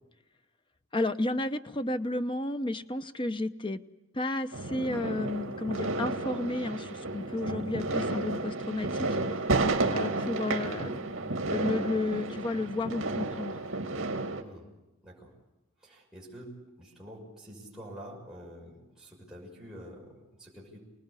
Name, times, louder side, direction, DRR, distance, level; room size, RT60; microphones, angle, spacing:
voice 1, 0.9-3.8 4.1-9.6 9.9-11.0 11.5-13.6, left 2 dB, 25° left, 9 dB, 0.9 m, -32 dB
sound 1, 4.5-14.4, right 2 dB, 70° right, 2.6 m, -32 dB
voice 2, 9.7-10.0 14.4-14.7 15.0-15.3 15.8-20.8, equal, 5° right, -5 dB, 6.2 m, -47 dB
27.5 x 19.5 x 8.4 m, 1.0 s
head